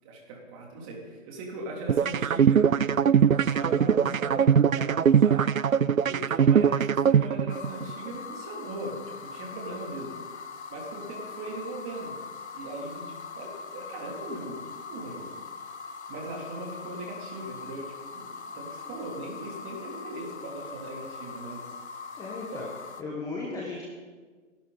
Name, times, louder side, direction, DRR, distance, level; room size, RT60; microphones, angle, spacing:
voice 1, 0.0-5.5 6.1-10.1 10.7-12.2 12.5-14.6 14.9-15.3 16.1-21.7 22.5-22.6, right 2 dB, 25° right, -1 dB, 3.4 m, -39 dB
sound 1, 1.9-7.9, right 7 dB, 85° right, 0.6 m, -21 dB
sound 2, 7.5-23.0, left 5 dB, 55° left, 1.3 m, -41 dB
voice 2, 22.2-22.7 23.0-23.8, left 3 dB, 10° left, -4 dB, 1.5 m, -35 dB
29.5 x 11.5 x 4.1 m, 1.4 s
figure-of-eight pair, 135°, 40 cm